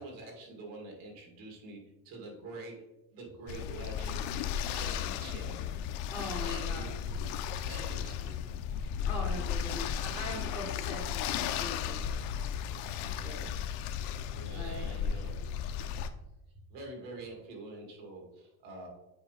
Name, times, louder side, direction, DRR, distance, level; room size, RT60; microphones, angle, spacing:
voice 1, 0.0-2.9 3.1-4.3 4.7-5.7 6.4-7.3 7.6-8.3 14.3-15.8 16.7-18.9, right 2 dB, 55° right, 0 dB, 2.5 m, -46 dB
sound 1, 3.5-16.1, left 8 dB, 65° left, 0.7 m, -35 dB
voice 2, 6.1-6.9 9.0-12.1 13.2-13.6 14.5-14.9, left 1 dB, 5° right, -1 dB, 0.8 m, -41 dB
8.1 x 4.7 x 3.4 m, 0.94 s
cardioid pair, 155°, 42 cm